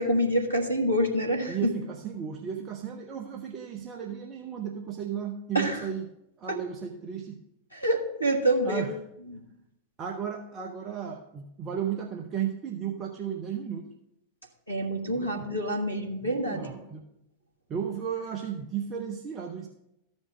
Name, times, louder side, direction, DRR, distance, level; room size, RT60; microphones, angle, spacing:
voice 1, 0.0-1.7 5.5-5.8 6.5-6.6 7.7-8.9 9.3-9.4 14.7-16.7, right 1 dB, 85° left, 2 dB, 1.5 m, -27 dB
voice 2, 1.5-6.1 6.4-7.4 8.6-8.9 10.0-13.9 15.1-15.5 16.2-17.0 17.7-19.7, right 8 dB, 30° right, 2 dB, 0.8 m, -34 dB
13.5 x 5.3 x 5.2 m, 0.85 s
figure-of-eight pair, 90°, 0 cm